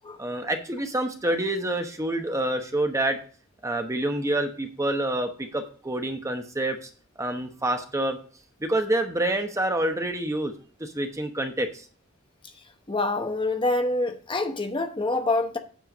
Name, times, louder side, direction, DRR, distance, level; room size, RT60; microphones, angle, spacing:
voice 1, 0.2-3.2 3.6-6.9 7.2-8.2 8.6-10.5 10.8-11.8, right 1 dB, 15° right, 1.0 m, -27 dB
voice 2, 12.9-15.6, left 2 dB, 25° left, 0.9 m, -26 dB
9.2 x 4.5 x 6.4 m
head